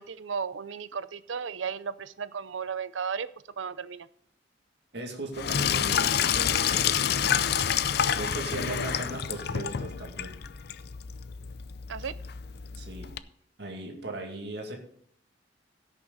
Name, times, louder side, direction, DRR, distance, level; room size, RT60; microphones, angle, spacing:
voice 1, 0.0-3.3 3.6-4.1 8.6-8.8 11.9-12.1, right 6 dB, 80° right, 16 dB, 0.6 m, -34 dB
voice 2, 4.9-7.4 8.1-10.3 12.7-13.1 13.6-14.8, right 2 dB, 60° right, 2 dB, 2.3 m, -38 dB
Sink (filling or washing), 5.3-13.2, left 8 dB, 55° left, 0.5 m, -28 dB
16.5 x 6.7 x 4.1 m, 0.66 s
head